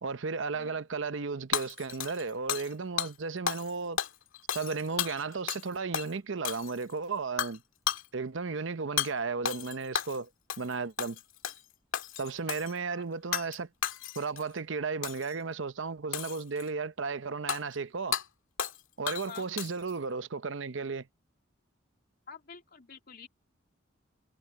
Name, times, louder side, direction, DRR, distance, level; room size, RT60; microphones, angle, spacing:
voice 1, 0.0-4.0 4.5-7.6 8.1-10.3 10.6-11.2 12.2-13.7 14.2-18.2 19.0-21.1, right 4 dB, 65° right, 0.7 m, -34 dB
voice 2, 0.5-0.9 12.9-13.0 19.3-19.5 22.3-23.3, left 6 dB, 50° left, 2.9 m, -48 dB
Hammer / Shatter, 1.5-2.7 3.0-3.1 3.5-3.7 4.0-5.7 5.9-6.1 6.4-6.9 7.4-7.6 7.9-8.0 9.0-9.1 9.4-10.2 10.5-10.7 11.0-11.6 11.9-12.7 13.3-13.6 13.8-14.4 15.0-15.3 16.1-16.7 17.5-17.6 18.1-18.2 18.6-18.8 19.1-19.9, left 9 dB, 80° left, 1.9 m, -33 dB
head